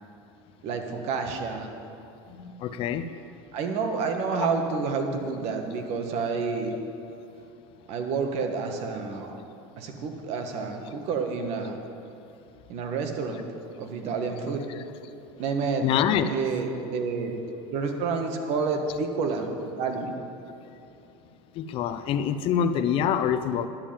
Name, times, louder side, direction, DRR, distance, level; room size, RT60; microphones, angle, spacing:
voice 1, 0.6-1.7 3.5-6.7 7.9-9.3 9.8-11.8 12.7-13.5 13.8-14.6 15.4-15.9 16.3-17.3 17.7-19.5 19.8-20.2, right 4 dB, 55° right, 4 dB, 1.5 m, -29 dB
voice 2, 2.3-3.1 15.8-16.4 21.6-23.7, left 8 dB, 40° left, 9 dB, 0.6 m, -25 dB
10.5 x 7.2 x 8.8 m, 2.8 s
supercardioid pair, 140°, 14 cm